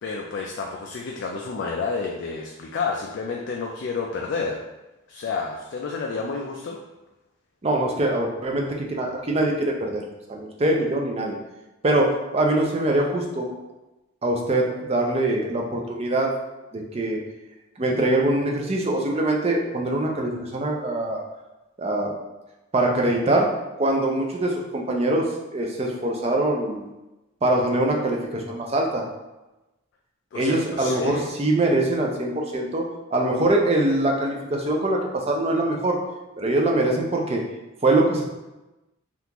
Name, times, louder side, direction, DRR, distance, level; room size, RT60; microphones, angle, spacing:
voice 1, 0.0-4.6 5.1-6.8 30.3-31.3, left 4 dB, 55° left, 0 dB, 0.3 m, -30 dB
voice 2, 7.6-10.0 10.3-11.4 11.8-13.5 14.2-16.3 16.7-17.2 17.8-21.2 21.8-22.1 22.7-23.5 23.8-26.9 27.4-29.1 30.3-32.9 33.1-36.0 36.4-37.4 37.8-38.2, right 1 dB, 30° right, 0 dB, 0.4 m, -23 dB
3.6 x 2.4 x 2.8 m, 1.0 s
head